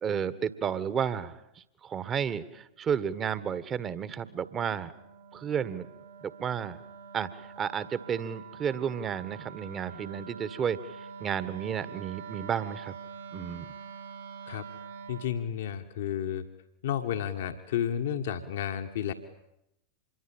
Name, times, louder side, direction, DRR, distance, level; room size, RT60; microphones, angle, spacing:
voice 1, 0.0-4.9 5.3-5.9 6.4-6.8 7.1-13.0 13.3-13.7, right 8 dB, 25° right, 15 dB, 1.6 m, -32 dB
Wind instrument woodwind instrument, 2.4-15.3, right 6 dB, 75° right, 4.7 m, -46 dB
voice 2, 15.1-16.4 16.8-19.1, left 9 dB, 60° left, 5 dB, 1.6 m, -31 dB
26.5 x 22.5 x 8.9 m, 0.83 s
figure-of-eight pair, 90°, 0 cm